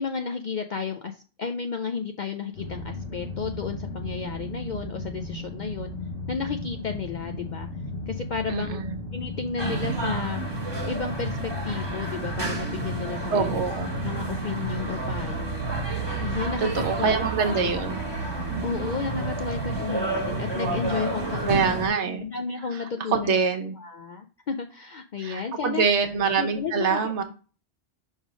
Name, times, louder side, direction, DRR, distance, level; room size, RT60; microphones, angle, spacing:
voice 1, 0.0-5.9 6.3-7.7 8.1-8.8 9.1-10.4 10.8-13.6 14.0-15.7 16.2-17.1 17.6-17.7 18.0-21.8 22.2-23.4 23.8-25.9 26.4-27.2, left 5 dB, 65° left, 5 dB, 0.4 m, -32 dB
sound 1, 2.5-19.8, equal, 85° left, 1.3 m, -35 dB
voice 2, 8.5-9.0 13.3-14.0 16.7-18.0 18.5-18.6 21.5-22.2 23.1-23.7 25.2-27.2, right 5 dB, 70° right, 6 dB, 1.1 m, -25 dB
sound 2, 9.6-21.9, right 2 dB, 20° right, 1.3 m, -31 dB
5.4 x 3.4 x 4.9 m, 0.37 s
omnidirectional pair, 1.3 m